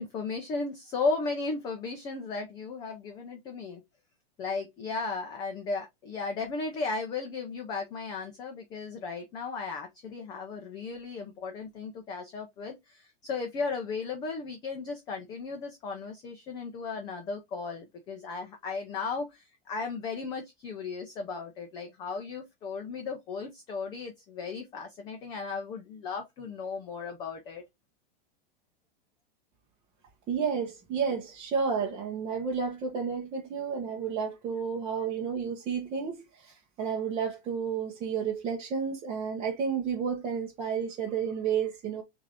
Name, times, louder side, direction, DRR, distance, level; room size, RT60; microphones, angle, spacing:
voice 1, 0.0-3.8 4.4-27.6, left 4 dB, 15° left, 0.4 m, -35 dB
voice 2, 30.3-42.0, right 6 dB, 20° right, 0.8 m, -31 dB
6.4 x 2.6 x 2.7 m
supercardioid pair, 160°, 30 cm